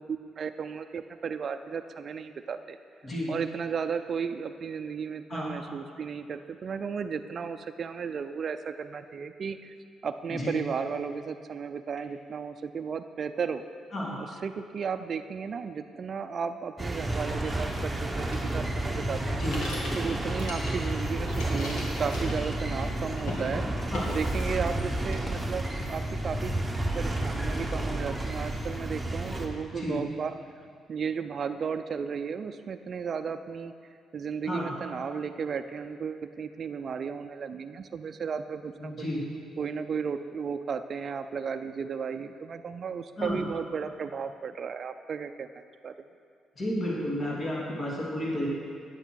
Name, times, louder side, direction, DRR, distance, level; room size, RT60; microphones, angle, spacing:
voice 1, 0.0-2.8 3.3-9.7 10.0-13.6 14.2-19.4 19.9-23.7 24.1-26.6 26.9-30.3 30.9-33.7 34.1-39.1 39.6-45.5 45.8-46.1, right 6 dB, 50° right, 8 dB, 0.5 m, -34 dB
sound 1, 16.8-29.5, right 1 dB, 10° right, 1.3 m, -31 dB
sound 2, 18.3-20.9 21.2-22.9 23.2-23.5 23.9-24.8 25.1-25.9, left 1 dB, 85° left, 2.5 m, -40 dB
voice 2, 38.8-39.2 43.2-43.4 46.6-48.5, left 1 dB, 40° left, -5 dB, 2.9 m, -32 dB
9.8 x 8.1 x 6.3 m, 2.2 s
cardioid pair, 90°, 0 cm